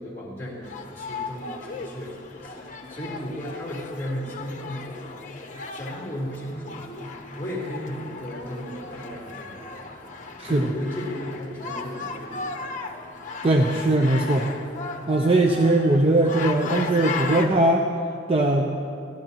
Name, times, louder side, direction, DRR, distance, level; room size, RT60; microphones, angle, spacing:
voice 1, 0.0-12.5, equal, 10° left, -4 dB, 3.6 m, -35 dB
sound 1, 0.6-17.5, left 4 dB, 45° left, 0.9 m, -36 dB
voice 2, 10.4-10.7 13.4-14.5 15.1-17.9 18.3-18.7, right 2 dB, 35° right, 2 dB, 0.7 m, -20 dB
25.0 x 13.0 x 3.0 m, 2.5 s
head